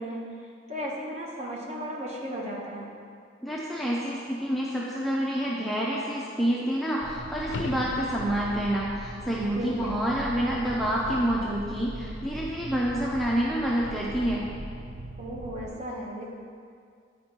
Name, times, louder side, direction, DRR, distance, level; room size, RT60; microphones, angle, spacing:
voice 1, 0.0-2.9 9.6-10.0 15.2-16.3, equal, 35° right, -3 dB, 0.9 m, -35 dB
voice 2, 3.4-14.4, equal, ahead, -5 dB, 0.4 m, -28 dB
sound 1, 7.0-15.7, right 1 dB, 60° right, 0.4 m, -40 dB
sound 2, 7.4-8.7 13.5-13.6, left 3 dB, 75° left, 0.4 m, -37 dB
9.2 x 4.3 x 2.9 m, 2.3 s
head